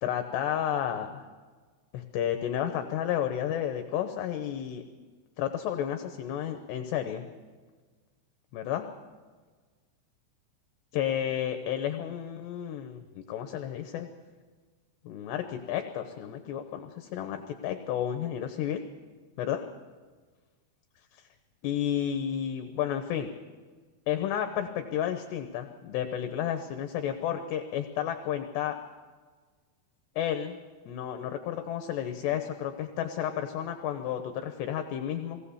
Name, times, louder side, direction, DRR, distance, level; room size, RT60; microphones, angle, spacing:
voice 1, 0.0-1.3 1.9-4.8 5.4-7.2 8.5-8.9 10.9-14.1 15.0-18.8 19.4-19.6 21.1-21.2 21.6-23.3 24.1-28.8 30.2-30.6 30.9-35.4, left 10 dB, 75° left, 7 dB, 2.9 m, -32 dB
21.0 x 18.0 x 7.1 m, 1.4 s
omnidirectional pair, 5.4 m